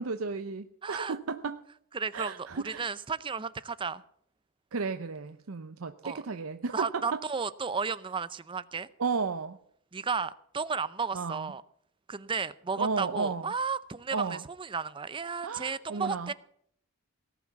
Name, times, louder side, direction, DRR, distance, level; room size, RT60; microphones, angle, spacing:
voice 1, 0.0-1.6 2.1-2.9 4.7-7.2 9.0-9.6 11.1-11.5 12.8-13.5 14.1-14.4 15.4-16.3, right 4 dB, 85° right, 0.7 m, -33 dB
voice 2, 0.8-1.2 1.9-4.0 6.0-6.2 6.7-8.9 9.9-11.6 12.1-16.3, right 5 dB, 25° right, 0.5 m, -33 dB
18.0 x 6.0 x 9.4 m
head